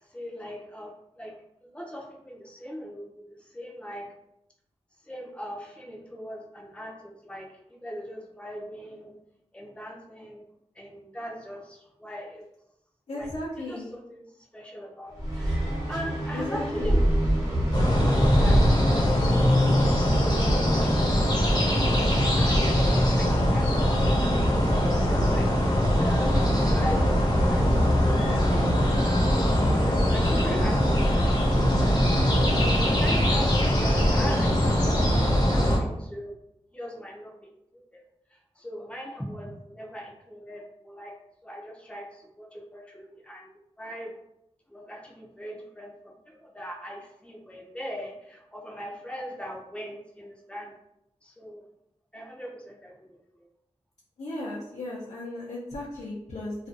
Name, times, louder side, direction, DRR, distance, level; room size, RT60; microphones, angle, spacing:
voice 1, 0.0-1.4 1.6-4.1 5.0-9.1 9.5-10.4 10.7-12.4 13.1-13.3 13.6-14.2 14.5-17.0 18.0-18.6 18.9-21.6 22.4-29.2 29.8-31.5 31.8-32.0 32.4-36.4 36.7-38.0 38.3-41.1 41.4-43.5 43.8-44.2 44.7-50.7 51.2-51.6 52.1-53.5, equal, 10° left, -2 dB, 0.6 m, -40 dB
voice 2, 13.1-13.9 16.3-16.9 30.1-30.6 54.2-56.6, left 1 dB, 80° left, -8 dB, 0.6 m, -35 dB
sound 1, 15.2-20.1, right 1 dB, 35° right, 0.9 m, -26 dB
sound 2, 17.7-35.8, equal, 40° left, 0.8 m, -22 dB
2.4 x 2.4 x 2.5 m, 0.81 s
wide cardioid pair, 65°, 11 cm